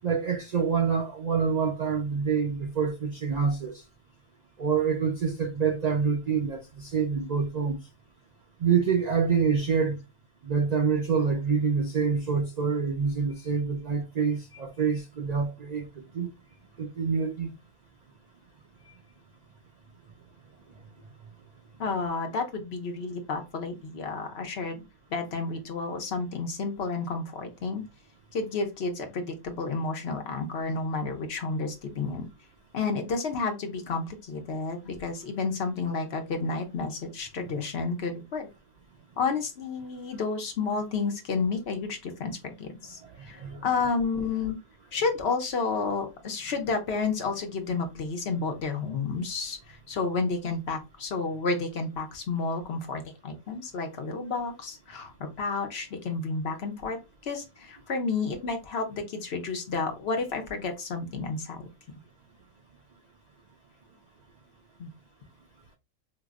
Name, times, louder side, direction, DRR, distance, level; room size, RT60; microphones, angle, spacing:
voice 1, 0.0-3.8 4.6-7.8 8.6-10.0 10.4-16.3 16.8-17.5 43.2-43.6, right 6 dB, 70° right, 0.4 m, -26 dB
voice 2, 21.8-24.8 25.1-27.8 28.3-32.2 32.7-38.5 39.2-44.6 44.9-61.7 64.8-64.9, left 4 dB, 60° left, 0.9 m, -31 dB
4.8 x 2.0 x 2.3 m
omnidirectional pair, 1.3 m